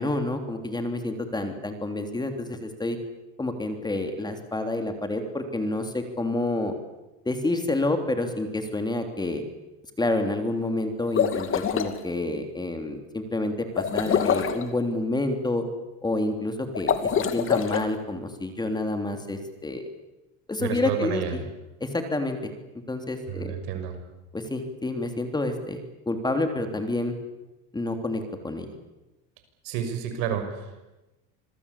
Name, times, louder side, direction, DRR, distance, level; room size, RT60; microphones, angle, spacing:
voice 1, 0.0-3.0 3.4-6.7 7.2-9.4 10.0-15.6 16.0-16.9 17.3-19.9 20.5-21.4 21.8-22.5 22.9-23.5 24.3-25.8 26.0-27.1 27.7-28.7, left 2 dB, 10° left, 6 dB, 3.3 m, -28 dB
sound 1, 11.0-11.9 13.7-14.6 16.7-17.8, left 8 dB, 35° left, 2.5 m, -25 dB
voice 2, 20.6-21.3 23.3-24.0 29.6-30.9, right 8 dB, 75° right, 6 dB, 6.4 m, -30 dB
27.0 x 21.0 x 8.5 m, 1.0 s
cardioid pair, 130°, 35 cm